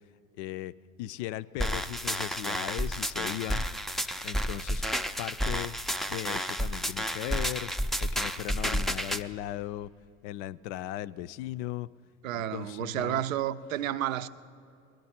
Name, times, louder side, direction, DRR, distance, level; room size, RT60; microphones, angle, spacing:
voice 1, 0.4-0.7 1.0-3.6 4.2-4.8 5.2-5.8 6.1-7.7 8.0-9.9 10.2-11.9 12.3-13.2, left 14 dB, 60° left, 0.5 m, -37 dB
sound 1, 1.6-9.2, equal, ahead, 0.4 m, -31 dB
voice 2, 12.2-14.3, right 11 dB, 80° right, 0.5 m, -31 dB
20.5 x 12.0 x 4.3 m
hypercardioid pair, 65°, 39 cm